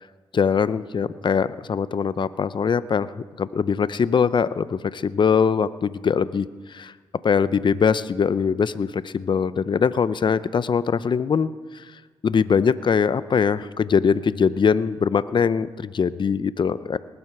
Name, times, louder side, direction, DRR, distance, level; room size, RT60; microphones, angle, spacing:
voice 1, 0.3-3.1 3.4-6.9 7.2-11.5 11.7-11.8 12.2-17.0, left 6 dB, 45° left, 16 dB, 0.6 m, -22 dB
19.5 x 7.8 x 5.9 m, 1.4 s
cardioid pair, 65°, 11 cm